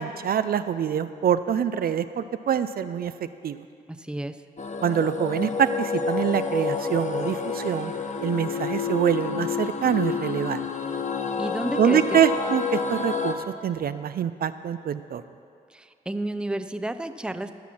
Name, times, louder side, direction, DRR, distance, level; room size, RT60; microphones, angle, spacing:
voice 1, 0.0-3.1 3.4-3.6 4.8-7.9 8.2-10.7 11.8-15.2, right 9 dB, 65° right, 12 dB, 0.4 m, -25 dB
voice 2, 3.9-4.4 11.4-12.2 15.7-17.5, right 1 dB, 5° right, 10 dB, 0.6 m, -31 dB
sound 1, 4.6-13.3, left 5 dB, 45° left, 1.0 m, -29 dB
14.5 x 6.1 x 5.9 m, 2.4 s
supercardioid pair, 50°, 17 cm